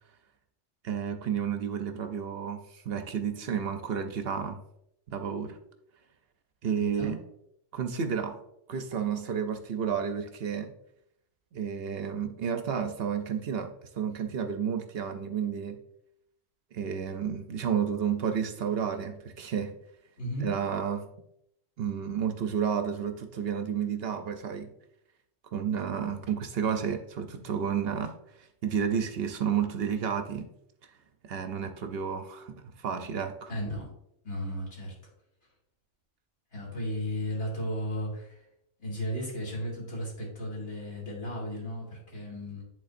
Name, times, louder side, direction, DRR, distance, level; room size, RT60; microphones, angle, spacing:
voice 1, 0.8-4.6 5.1-5.6 6.6-7.2 7.7-8.4 8.7-10.7 11.5-15.8 16.7-19.7 20.4-21.1 21.8-24.7 25.5-30.5 31.2-33.5, right 7 dB, 65° right, 7 dB, 0.8 m, -31 dB
voice 2, 6.6-7.2 20.2-20.5 33.5-33.9 34.2-34.9 36.5-38.4 38.8-42.6, equal, 70° left, -4 dB, 2.5 m, -35 dB
10.5 x 3.8 x 2.5 m, 0.77 s
omnidirectional pair, 1.2 m